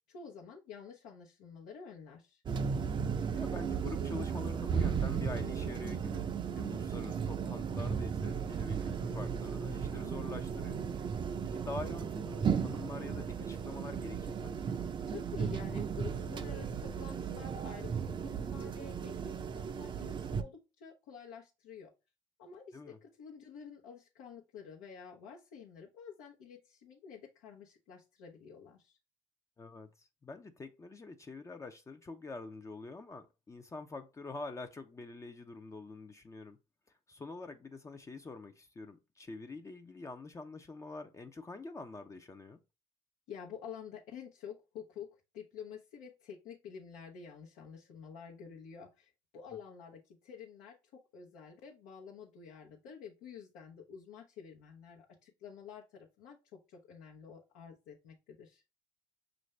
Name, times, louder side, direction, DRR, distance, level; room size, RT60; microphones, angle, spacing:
voice 1, 0.1-2.4 15.1-21.9 22.4-29.0 43.3-45.1 45.3-58.6, left 7 dB, 80° left, 0.9 m, -49 dB
sound 1, 2.5-20.4, right 6 dB, 35° right, 0.5 m, -35 dB
voice 2, 3.3-6.3 6.5-11.1 11.4-14.6 22.7-23.0 29.6-36.6 37.1-42.6, left 3 dB, 20° left, 0.5 m, -46 dB
5.6 x 2.6 x 3.2 m
supercardioid pair, 75°, 14 cm